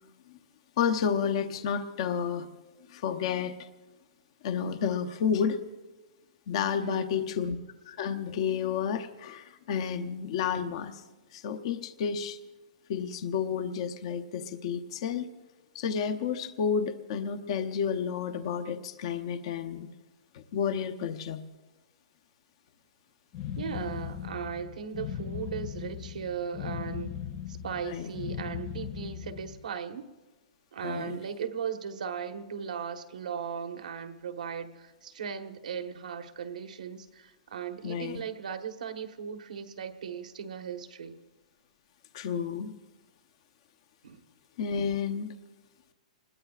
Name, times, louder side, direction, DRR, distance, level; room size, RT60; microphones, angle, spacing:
voice 1, 0.8-2.5 2.9-3.7 4.4-5.6 6.5-7.6 7.9-11.0 11.3-12.4 12.9-15.3 15.7-19.9 20.3-21.4 27.9-28.1 30.8-31.2 37.8-38.2 42.1-42.7 44.6-45.4, left 7 dB, 45° left, 8 dB, 0.8 m, -31 dB
voice 2, 6.8-7.3 23.5-27.2 27.5-30.1 30.7-41.2 44.0-44.2, right 7 dB, 85° right, 7 dB, 1.3 m, -37 dB
sound 1, 23.3-29.6, left 9 dB, 25° left, 0.5 m, -38 dB
27.0 x 21.0 x 2.5 m, 1.2 s
hypercardioid pair, 165°, 4 cm